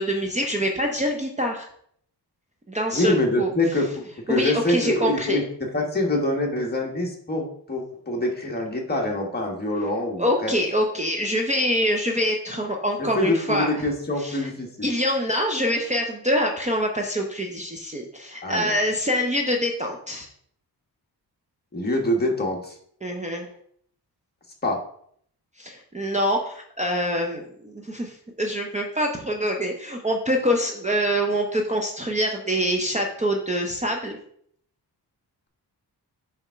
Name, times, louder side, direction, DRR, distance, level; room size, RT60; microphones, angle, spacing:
voice 1, 0.0-1.7 2.7-3.5 4.3-5.4 10.2-13.7 14.2-14.5 14.8-20.3 23.0-23.5 25.6-34.2, equal, 15° right, 2 dB, 0.7 m, -25 dB
voice 2, 2.9-10.5 13.1-14.9 18.4-18.7 21.7-22.7 24.6-24.8, left 1 dB, 25° left, 0 dB, 1.4 m, -25 dB
6.9 x 3.6 x 5.6 m, 0.65 s
wide cardioid pair, 150°, 41 cm